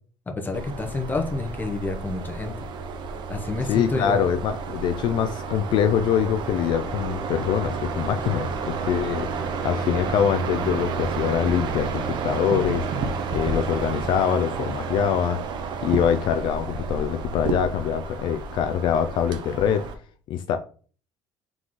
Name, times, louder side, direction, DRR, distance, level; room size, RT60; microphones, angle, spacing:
voice 1, 0.3-2.7 3.3-4.2, left 3 dB, 20° left, 5 dB, 0.9 m, -29 dB
sound 1, 0.5-19.9, right 4 dB, 60° right, 0.7 m, -31 dB
voice 2, 3.7-12.9 13.3-15.4 15.8-19.9 20.3-20.6, left 8 dB, 60° left, 8 dB, 0.4 m, -24 dB
3.8 x 3.7 x 3.1 m, 0.41 s
supercardioid pair, 95°, 9 cm